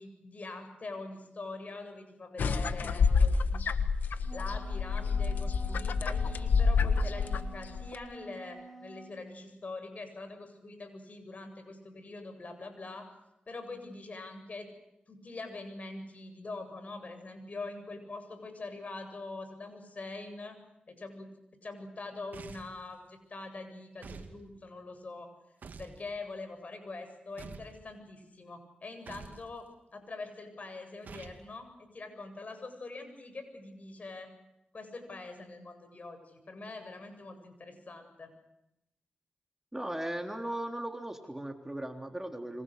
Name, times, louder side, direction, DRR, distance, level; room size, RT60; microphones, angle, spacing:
voice 1, 0.0-3.7 4.3-13.1 13.5-14.7 15.1-20.6 20.9-21.3 21.6-25.3 25.8-34.3 34.7-38.3, left 3 dB, 55° left, 7 dB, 7.9 m, -44 dB
sound 1, 2.4-8.0, left 5 dB, 85° left, 1.5 m, -28 dB
Wind instrument woodwind instrument, 4.0-9.2, right 1 dB, 10° left, 4.6 m, -49 dB
sound 2, 22.3-22.8 24.0-24.4 25.6-26.0 27.4-27.8 29.1-29.4 31.0-31.4, right 4 dB, 75° right, 2.7 m, -46 dB
voice 2, 39.7-42.6, right 1 dB, 15° right, 4 dB, 3.5 m, -37 dB
28.0 x 25.0 x 6.7 m, 0.88 s
cardioid pair, 50°, 3 cm